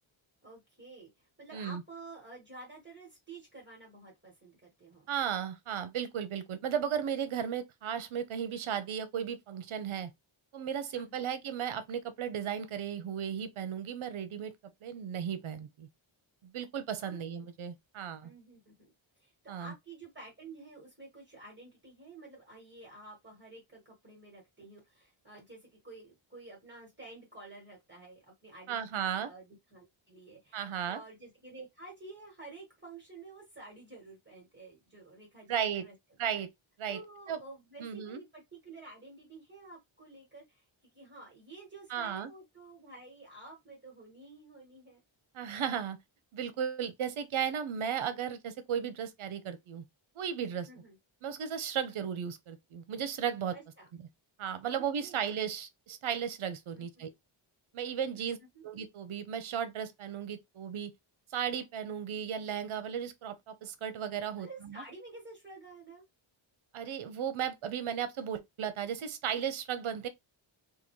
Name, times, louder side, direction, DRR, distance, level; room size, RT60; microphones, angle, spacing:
voice 1, 0.4-5.1 10.9-11.3 17.0-17.2 18.2-35.9 36.9-40.6 40.9-45.0 50.7-51.0 53.5-53.9 54.6-55.3 56.7-57.0 58.1-58.6 64.4-66.0, right 3 dB, 20° right, 1.5 m, -51 dB
voice 2, 5.1-10.1 10.5-14.5 14.8-15.9 16.4-18.3 19.5-19.7 28.7-29.3 30.5-31.0 35.5-35.8 36.2-36.5 36.8-37.0 37.3-37.4 37.8-38.2 41.9-42.3 45.3-46.0 46.3-49.8 50.2-50.7 51.2-53.6 54.4-57.1 57.7-58.4 58.6-60.9 61.3-64.8 66.7-70.1, right 8 dB, 70° right, 0.8 m, -35 dB
3.7 x 2.3 x 3.1 m
wide cardioid pair, 160°, 50 cm